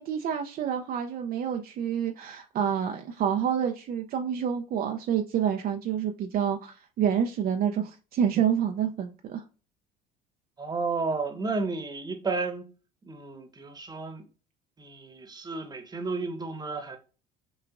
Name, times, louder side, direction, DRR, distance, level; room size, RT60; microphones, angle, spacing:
voice 1, 0.0-9.4, right 8 dB, 50° right, 0.6 m, -28 dB
voice 2, 10.6-12.7 13.0-14.2 14.8-17.0, right 3 dB, 20° right, 1.1 m, -32 dB
6.0 x 2.4 x 2.5 m
supercardioid pair, 80°, 19 cm